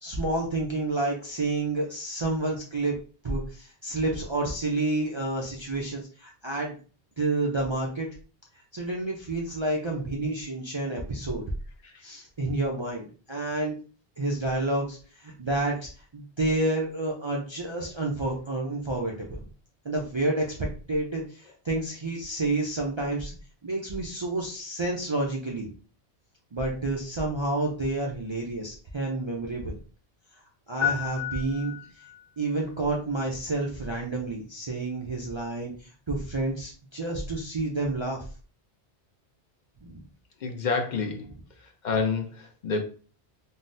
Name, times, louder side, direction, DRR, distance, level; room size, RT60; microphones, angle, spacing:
voice 1, 0.0-3.0 3.2-6.8 7.2-8.1 8.7-11.4 12.0-13.7 14.2-19.4 19.8-23.3 23.6-25.7 26.5-29.8 30.7-32.0 32.4-38.3 39.8-40.1, right 2 dB, 45° right, -3 dB, 0.4 m, -29 dB
sound 1, 30.8-32.3, left 10 dB, 20° left, 0.7 m, -31 dB
voice 2, 40.4-41.3 41.6-42.9, left 4 dB, 55° left, 4 dB, 0.6 m, -29 dB
3.7 x 2.0 x 2.6 m, 0.38 s
omnidirectional pair, 1.1 m